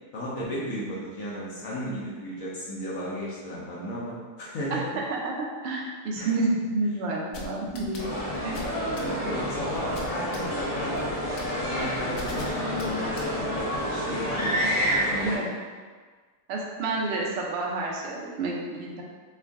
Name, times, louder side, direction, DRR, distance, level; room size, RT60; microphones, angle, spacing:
voice 1, 0.1-4.9 6.2-6.3 8.6-15.5, equal, 60° left, -7 dB, 1.0 m, -34 dB
voice 2, 5.1-8.1 8.4-8.6 15.2-15.5 16.5-19.0, right 2 dB, 85° right, -2 dB, 0.5 m, -29 dB
sound 1, 7.3-13.8, left 3 dB, 80° left, 1.2 m, -40 dB
sound 2, 8.0-15.4, equal, 30° left, 0.5 m, -29 dB
3.5 x 2.3 x 3.5 m, 1.5 s
omnidirectional pair, 1.8 m